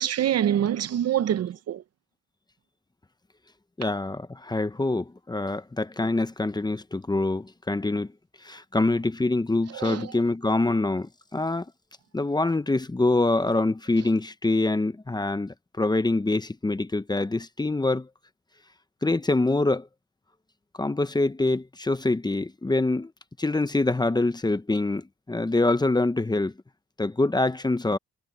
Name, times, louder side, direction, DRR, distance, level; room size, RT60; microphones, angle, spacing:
voice 1, 0.0-1.8 9.7-10.1, right 10 dB, 55° right, 0.8 m, -25 dB
voice 2, 3.8-8.1 8.4-11.7 12.1-18.1 19.0-19.9 20.8-23.1 23.4-26.5 27.0-28.0, left 2 dB, 15° left, 0.9 m, -25 dB
cardioid pair, 90°, 30 cm